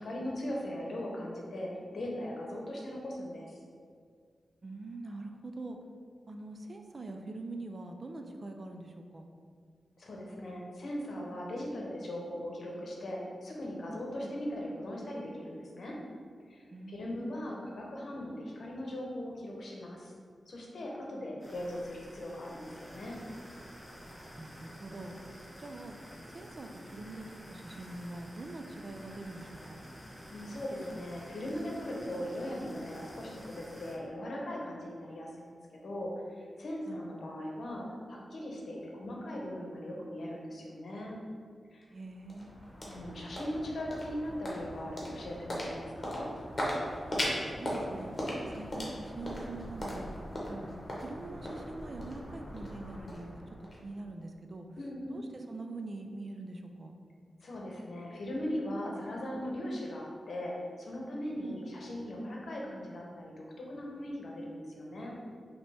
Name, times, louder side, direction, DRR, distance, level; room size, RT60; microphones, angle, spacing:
voice 1, 0.0-3.6 10.0-16.0 16.5-20.1 20.5-23.2 30.3-35.5 35.8-41.2 41.7-41.9 42.9-46.3 54.8-55.3 57.4-65.1, left 1 dB, 65° left, -2 dB, 0.9 m, -39 dB
voice 2, 4.6-5.8 6.3-9.3 14.2-14.4 16.7-17.4 24.4-25.2 25.6-26.0 26.3-29.8 36.9-37.3 41.9-42.6 47.6-48.1 48.4-50.1 50.5-50.7 51.0-54.7 55.1-56.9 61.4-61.6, right 2 dB, 45° right, 4 dB, 0.4 m, -44 dB
sound 1, 21.4-33.9, equal, ahead, 1.1 m, -50 dB
sound 2, 41.8-54.2, equal, 35° left, 1.1 m, -39 dB
5.3 x 2.9 x 3.4 m, 2.1 s
wide cardioid pair, 100°, 0 cm